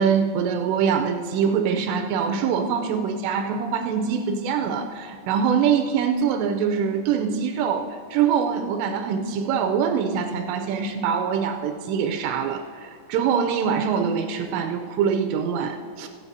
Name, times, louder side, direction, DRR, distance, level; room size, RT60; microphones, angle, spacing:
voice 1, 0.0-16.1, right 7 dB, 90° right, 4 dB, 2.9 m, -24 dB
22.5 x 7.9 x 2.7 m, 2.5 s
omnidirectional pair, 4.8 m